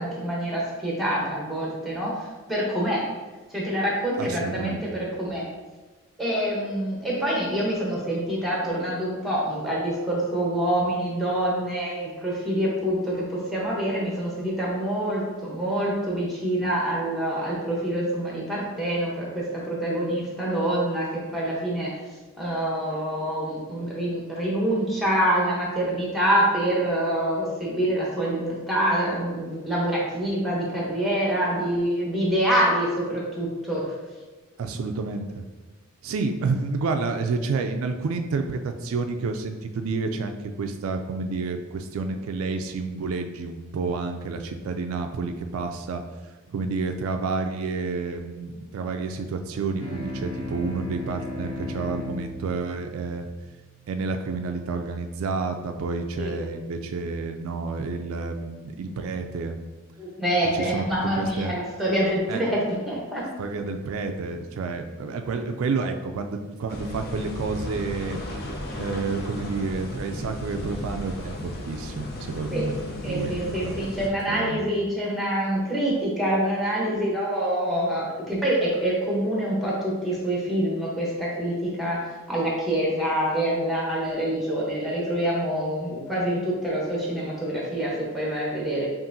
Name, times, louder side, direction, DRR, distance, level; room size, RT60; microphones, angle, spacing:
voice 1, 0.0-3.1 3.5-5.5 6.2-22.0 22.4-33.9 56.2-56.3 60.0-63.2 72.5-72.7 73.0-88.9, right 1 dB, ahead, -4 dB, 0.8 m, -26 dB
voice 2, 4.2-4.8 34.6-35.4 36.0-46.0 46.5-53.3 53.9-59.6 60.5-60.9 61.2-61.6 62.3-62.4 63.4-68.2 68.8-72.8 73.1-73.3 73.6-73.8 74.3-74.6, right 4 dB, 80° right, 6 dB, 0.3 m, -29 dB
sound 1, 49.8-54.6, left 2 dB, 85° left, 1.5 m, -36 dB
sound 2, 66.7-74.1, left 1 dB, 45° left, 0.5 m, -35 dB
5.4 x 2.5 x 2.6 m, 1.2 s
head